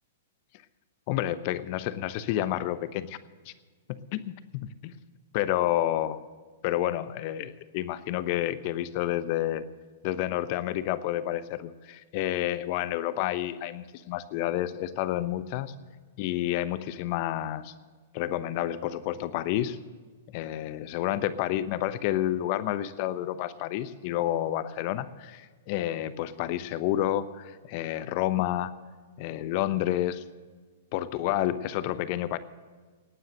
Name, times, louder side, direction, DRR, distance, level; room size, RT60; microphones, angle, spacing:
voice 1, 1.1-3.2 3.4-3.5 4.1-4.9 5.3-6.2 6.6-9.6 10.0-15.7 16.2-17.7 18.1-19.8 20.3-28.7 29.2-30.2 30.9-32.4, left 13 dB, 45° left, 14 dB, 0.9 m, -29 dB
18.0 x 9.3 x 6.5 m, 1.5 s
hypercardioid pair, 115°, 0 cm